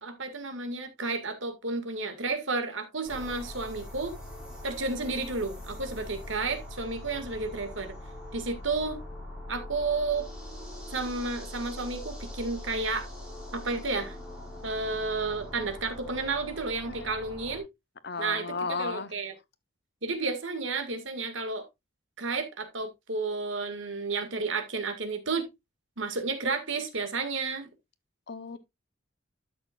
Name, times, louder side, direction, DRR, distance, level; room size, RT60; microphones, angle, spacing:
voice 1, 0.0-4.2 4.6-8.0 8.3-9.0 9.5-10.3 10.9-13.1 13.5-14.2 14.6-17.6 18.2-19.3 20.0-21.6 22.2-25.5 26.0-27.7, right 3 dB, 70° right, 2.0 m, -32 dB
sound 1, 3.1-17.6, left 1 dB, 5° right, 4.6 m, -42 dB
voice 2, 18.0-19.1 28.3-28.6, left 4 dB, 55° left, 0.8 m, -34 dB
12.5 x 6.8 x 2.4 m
head